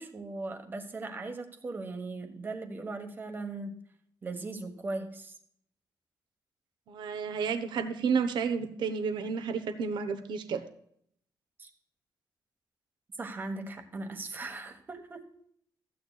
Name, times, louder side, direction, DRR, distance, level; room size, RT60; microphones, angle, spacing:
voice 1, 0.0-3.8 4.2-5.4 11.6-11.7 13.2-15.2, right 3 dB, 25° right, 6 dB, 1.2 m, -38 dB
voice 2, 6.9-10.6, right 6 dB, 90° right, 9 dB, 0.9 m, -31 dB
14.0 x 9.1 x 2.3 m, 0.68 s
wide cardioid pair, 175°, 8 cm